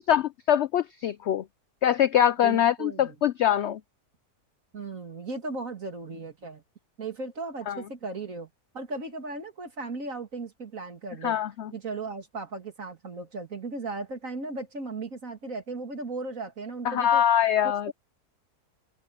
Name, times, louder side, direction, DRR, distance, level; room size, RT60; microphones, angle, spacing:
voice 1, 0.0-1.4 1.8-3.8 7.7-7.8 11.2-11.7 16.8-17.9, left 10 dB, 75° left, 0.6 m, -23 dB
voice 2, 2.4-3.2 4.7-6.6 7.0-8.5 8.7-11.4 11.7-17.3 17.6-17.9, right 3 dB, 55° right, 3.0 m, -36 dB
open air
omnidirectional pair, 1.7 m